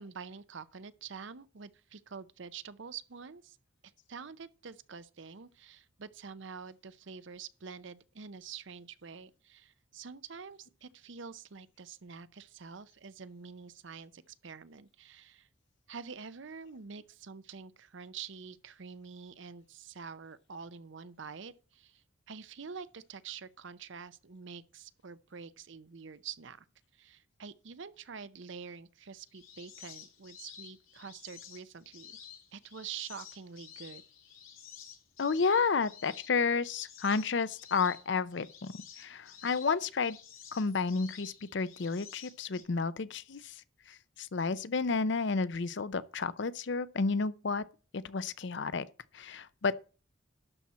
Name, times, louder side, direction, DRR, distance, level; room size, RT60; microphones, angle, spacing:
voice 1, 0.0-3.6 4.1-15.5 15.9-26.7 26.9-32.2 32.5-34.0, right 6 dB, 65° right, 0.6 m, -47 dB
sound 1, 29.3-42.6, left 8 dB, 80° left, 2.5 m, -52 dB
voice 2, 35.2-40.2 40.5-43.6 43.9-47.6 47.9-48.9 49.1-49.7, left 4 dB, 55° left, 0.5 m, -31 dB
12.0 x 4.3 x 7.2 m
head